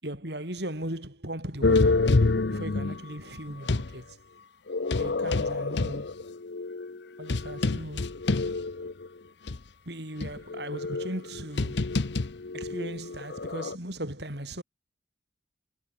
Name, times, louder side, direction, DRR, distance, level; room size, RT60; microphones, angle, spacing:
voice 1, 0.0-2.0 2.5-4.2 5.0-6.1 7.2-8.1 9.8-11.8 12.5-14.6, right 1 dB, 60° right, 6.7 m, -37 dB
sound 1, 1.6-3.9 4.7-9.1 9.5-9.6 10.2-13.7, left 3 dB, 65° left, 0.8 m, -27 dB
head